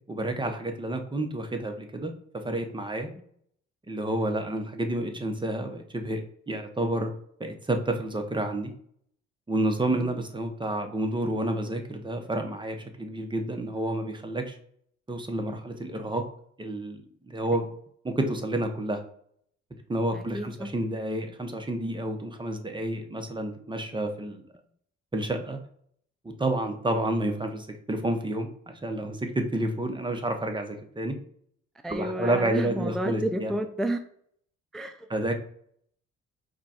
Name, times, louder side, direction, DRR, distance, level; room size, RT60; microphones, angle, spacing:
voice 1, 0.1-2.1 2.4-3.1 3.9-6.2 6.5-7.1 7.4-8.7 9.5-14.6 15.1-16.2 16.6-17.7 18.0-19.0 19.9-24.4 25.1-25.6 26.4-31.2 31.9-33.5 35.1-35.3, right 1 dB, 15° right, 5 dB, 0.8 m, -29 dB
voice 2, 20.1-20.7 31.8-34.0 34.7-35.1, right 1 dB, ahead, 6 dB, 0.4 m, -31 dB
5.0 x 2.3 x 4.3 m, 0.65 s
cardioid pair, 90°, 30 cm